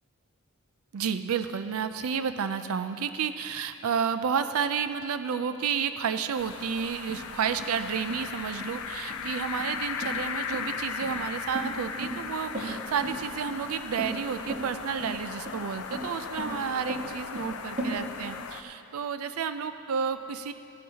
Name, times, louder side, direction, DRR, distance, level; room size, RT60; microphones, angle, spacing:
voice 1, 0.9-20.5, right 7 dB, 90° right, 10 dB, 0.4 m, -31 dB
sound 1, 6.4-18.6, left 6 dB, 90° left, 0.5 m, -37 dB
sound 2, 7.1-17.9, right 1 dB, 35° right, 1.8 m, -37 dB
15.0 x 11.0 x 2.8 m, 2.5 s
head